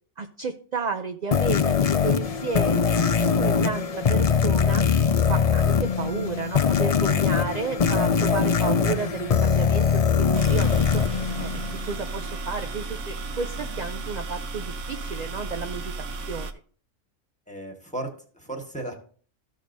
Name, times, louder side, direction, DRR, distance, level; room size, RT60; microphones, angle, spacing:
voice 1, 0.2-4.9 5.3-11.0 11.4-15.9 16.3-16.5, right 5 dB, 50° right, 5 dB, 0.5 m, -32 dB
sound 1, 1.3-12.1, left 6 dB, 65° left, 0.3 m, -22 dB
sound 2, 10.3-16.5, right 3 dB, 70° right, 1.1 m, -34 dB
voice 2, 17.5-19.0, right 1 dB, 5° left, 2 dB, 1.5 m, -35 dB
14.0 x 6.5 x 2.7 m, 0.44 s
omnidirectional pair, 1.4 m